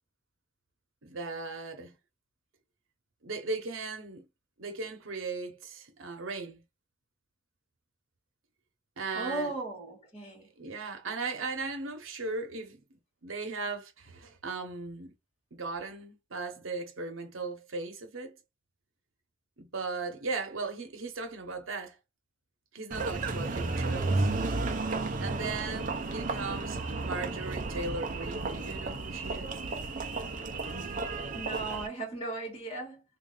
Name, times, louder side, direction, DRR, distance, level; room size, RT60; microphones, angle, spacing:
voice 1, 1.0-2.0 3.2-4.2 4.6-6.6 9.0-9.5 10.6-15.1 15.5-18.4 19.6-22.0 22.7-24.3 25.2-29.5, right 3 dB, 75° right, 1.0 m, -37 dB
voice 2, 9.1-10.5 31.3-33.0, right 2 dB, 30° left, 1.8 m, -36 dB
Engine, 22.9-31.9, right 3 dB, 40° right, 0.6 m, -33 dB
3.2 x 2.6 x 3.9 m
head